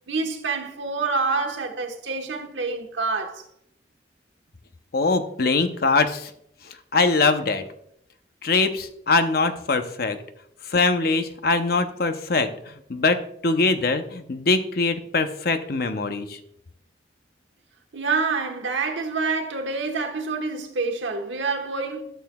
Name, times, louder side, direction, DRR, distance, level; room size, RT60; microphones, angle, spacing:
voice 1, 0.1-3.5 17.9-22.0, right 4 dB, 90° right, 1.2 m, -27 dB
voice 2, 4.9-6.3 6.9-7.6 8.4-10.2 10.7-12.5 12.9-16.3, left 3 dB, 55° left, 0.7 m, -22 dB
13.0 x 6.7 x 2.3 m
head